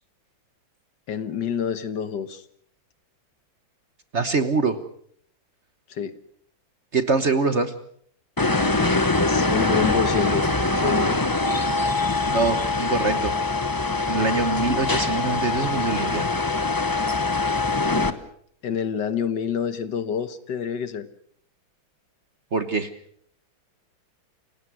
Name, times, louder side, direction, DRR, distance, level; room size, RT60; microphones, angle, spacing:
voice 1, 1.1-2.4 5.9-6.2 9.3-10.5 10.8-11.2 18.1-18.2 18.6-21.1, left 7 dB, 65° left, 12 dB, 1.8 m, -27 dB
voice 2, 4.1-4.8 6.9-7.7 12.3-13.3 14.1-16.3 22.5-22.9, right 4 dB, 40° right, 10 dB, 1.2 m, -24 dB
sound 1, 8.4-18.1, left 3 dB, 20° left, 0.5 m, -23 dB
28.5 x 18.0 x 6.2 m, 0.63 s
omnidirectional pair, 2.1 m